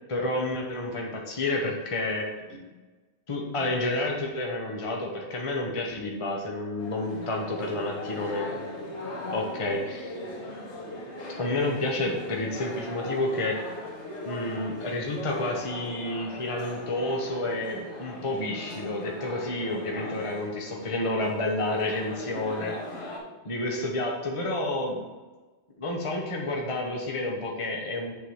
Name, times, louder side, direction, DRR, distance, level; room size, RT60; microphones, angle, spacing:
voice 1, 0.1-2.3 3.3-8.6 9.3-10.1 11.4-13.6 14.2-22.7 23.5-25.0 25.8-28.1, left 2 dB, 30° left, -1 dB, 1.0 m, -30 dB
voice 2, 2.3-2.7 3.5-3.7 7.1-8.2 8.8-9.8 19.9-20.2 22.2-23.0, left 2 dB, 55° left, 0 dB, 1.5 m, -45 dB
sound 1, 6.8-23.2, left 1 dB, 75° left, 1.9 m, -40 dB
7.0 x 3.8 x 6.3 m, 1.2 s
omnidirectional pair, 1.2 m